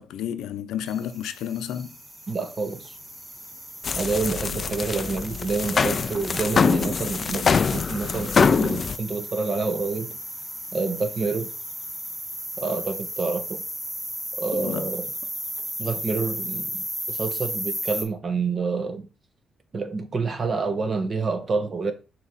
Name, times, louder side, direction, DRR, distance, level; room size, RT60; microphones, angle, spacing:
voice 1, 0.0-2.0 14.5-14.9, left 9 dB, 90° left, 0.6 m, -31 dB
sound 1, 0.9-18.0, equal, 5° right, 3.6 m, -35 dB
voice 2, 2.3-2.9 3.9-10.2 10.7-11.5 12.6-13.6 14.4-15.1 15.8-19.1 19.7-21.9, right 4 dB, 40° right, 1.3 m, -28 dB
sound 2, 3.8-9.0, left 5 dB, 45° left, 0.3 m, -23 dB
5.9 x 3.0 x 5.6 m
cardioid pair, 90°, 0 cm